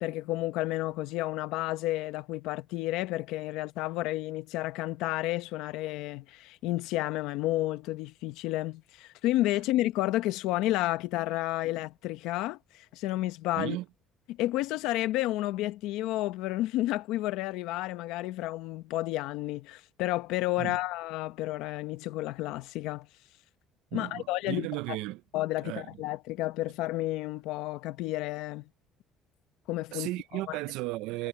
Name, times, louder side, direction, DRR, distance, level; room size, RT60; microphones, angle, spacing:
voice 1, 0.0-13.8 14.3-23.1 23.9-25.0 25.3-28.6 29.7-30.1 30.5-30.6, left 16 dB, 75° left, 1.0 m, -31 dB
voice 2, 23.9-25.2 25.6-25.9 29.9-31.3, right 19 dB, 80° right, 0.6 m, -35 dB
cardioid pair, 160°, 0 cm